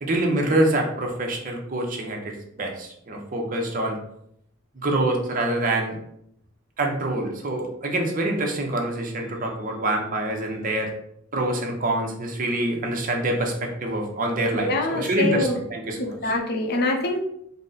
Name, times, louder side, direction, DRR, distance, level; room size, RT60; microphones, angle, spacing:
voice 1, 0.0-4.0 4.8-6.0 6.8-10.9 11.3-16.2, right 1 dB, 45° right, 1 dB, 0.7 m, -25 dB
voice 2, 14.5-15.6 16.0-17.2, left 2 dB, 55° left, 2 dB, 0.6 m, -25 dB
3.9 x 2.1 x 3.8 m, 0.72 s
head